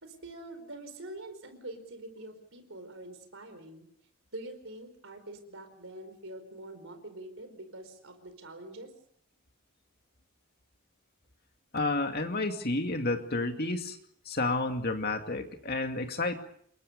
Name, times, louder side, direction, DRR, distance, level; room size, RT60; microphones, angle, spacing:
voice 1, 0.0-3.9 4.3-8.9, right 1 dB, 60° right, 8 dB, 4.7 m, -45 dB
voice 2, 11.7-14.0 14.3-16.4, left 2 dB, 45° left, 5 dB, 2.4 m, -30 dB
28.5 x 23.0 x 5.4 m, 0.63 s
head